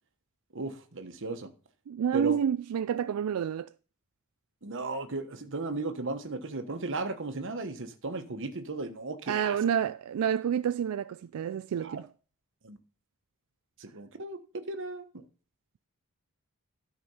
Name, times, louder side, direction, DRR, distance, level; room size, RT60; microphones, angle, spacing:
voice 1, 0.5-1.5 2.1-2.4 4.6-9.6 11.8-12.0 12.6-12.8 13.8-15.2, right 3 dB, 60° right, 1.2 m, -36 dB
voice 2, 1.9-3.7 9.3-12.0, right 8 dB, 80° right, 0.3 m, -29 dB
12.5 x 5.1 x 5.5 m
head